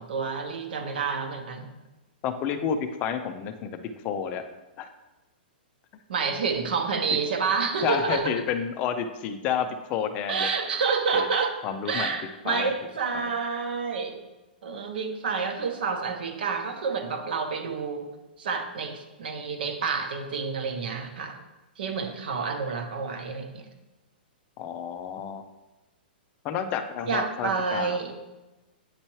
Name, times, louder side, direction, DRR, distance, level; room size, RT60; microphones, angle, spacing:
voice 1, 0.0-1.7 6.1-8.3 10.3-11.6 11.8-14.2 14.6-18.1 18.4-21.4 21.8-23.6 27.1-28.2, right 5 dB, 65° right, 5 dB, 1.0 m, -29 dB
voice 2, 2.2-3.7 4.0-4.4 4.8-4.9 7.8-10.5 11.1-11.3 11.6-12.1 12.4-12.7 13.1-13.3 24.6-25.4 26.4-28.0, left 7 dB, 25° left, 8 dB, 0.4 m, -30 dB
8.9 x 4.3 x 3.1 m, 1.1 s
hypercardioid pair, 165°, 6 cm